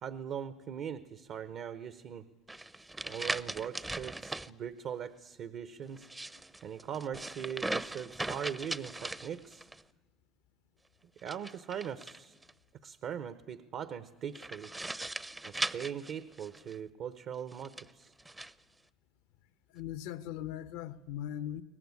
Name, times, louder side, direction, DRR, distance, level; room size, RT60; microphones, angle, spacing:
voice 1, 0.0-2.2 3.0-6.1 6.6-9.7 11.2-12.4 12.8-14.7 15.4-18.1, right 8 dB, 55° right, 14 dB, 0.9 m, -40 dB
sound 1, 2.5-4.5 5.9-9.8 11.2-12.5 14.3-16.8 17.5-18.5, right 2 dB, 15° right, 0.7 m, -39 dB
voice 2, 19.7-21.6, left 11 dB, 80° left, 15 dB, 1.0 m, -39 dB
23.0 x 18.5 x 9.6 m, 1.3 s
supercardioid pair, 90°, 0 cm